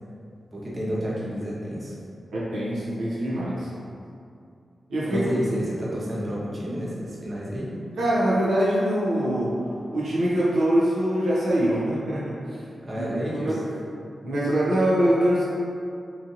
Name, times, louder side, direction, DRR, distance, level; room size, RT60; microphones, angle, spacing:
voice 1, 0.5-2.0 5.1-7.7 12.8-13.8, equal, 35° right, -7 dB, 0.9 m, -30 dB
voice 2, 2.3-3.7 4.9-5.3 8.0-12.4 12.9-13.6 14.2-15.5, right 1 dB, 90° right, -8 dB, 0.5 m, -24 dB
2.9 x 2.5 x 2.5 m, 2.4 s
cardioid pair, 40°, 0 cm